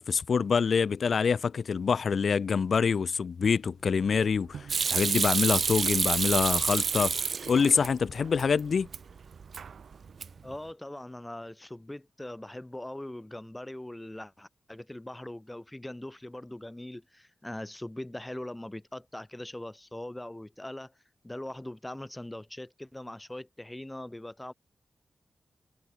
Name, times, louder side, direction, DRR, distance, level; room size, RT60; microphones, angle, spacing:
voice 1, 0.0-7.1 7.5-8.9, left 6 dB, 65° left, 1.4 m, -26 dB
sound 1, 3.7-10.2, right 7 dB, 85° right, 6.5 m, -51 dB
Hands / Sink (filling or washing), 4.7-7.9 8.3-9.0 9.3-9.8 10.1-10.5, right 5 dB, 60° right, 0.6 m, -28 dB
voice 2, 10.4-20.9 21.2-24.5, left 1 dB, 10° left, 3.3 m, -41 dB
wide cardioid pair, 135°, 0 cm